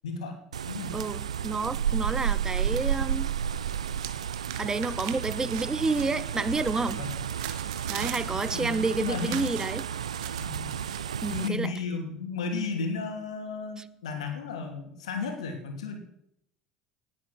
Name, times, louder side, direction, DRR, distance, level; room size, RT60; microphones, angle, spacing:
voice 1, 0.0-0.4 0.7-1.0 7.0-7.1 8.0-9.5 10.4-10.7 11.3-15.9, left 4 dB, 85° left, 4 dB, 3.0 m, -34 dB
sound 1, 0.5-11.5, right 8 dB, 90° right, 0.5 m, -32 dB
voice 2, 0.9-3.3 4.6-7.0 7.9-9.9 11.2-11.7, right 3 dB, 20° right, 16 dB, 0.9 m, -29 dB
sound 2, 2.2-3.0 3.3-11.2, right 12 dB, 70° right, 1.5 m, -42 dB
18.0 x 8.6 x 6.2 m, 0.78 s
hypercardioid pair, 75°, 3 cm